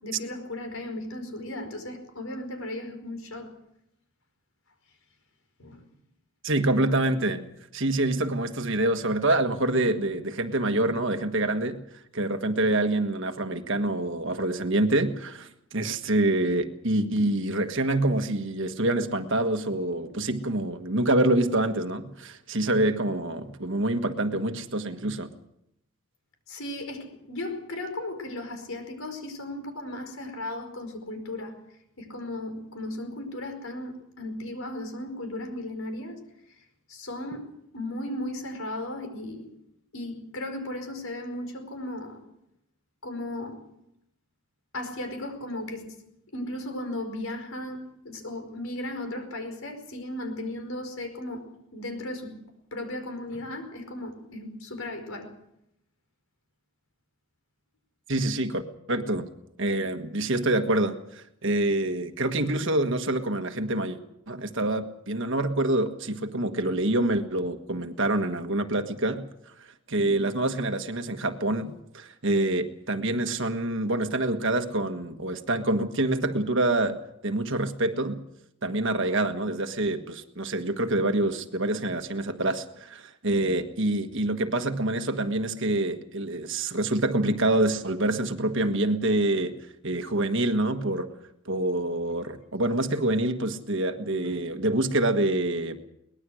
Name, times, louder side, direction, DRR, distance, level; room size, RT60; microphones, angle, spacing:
voice 1, 0.0-3.5 5.6-5.9 26.5-31.6 32.0-36.2 36.9-39.5 39.9-42.2 43.0-43.6 44.7-46.0 46.3-51.5 51.7-52.4 52.7-55.3 94.2-94.3, left 1 dB, 70° left, 6 dB, 5.0 m, -36 dB
voice 2, 6.4-7.5 7.7-11.8 12.1-25.3 58.1-58.6 58.9-59.3 59.6-64.0 64.3-69.3 69.9-77.0 77.2-78.2 78.6-89.5 89.8-91.1 91.4-95.8, right 1 dB, 55° right, 7 dB, 1.5 m, -26 dB
23.0 x 20.0 x 6.4 m, 0.78 s
head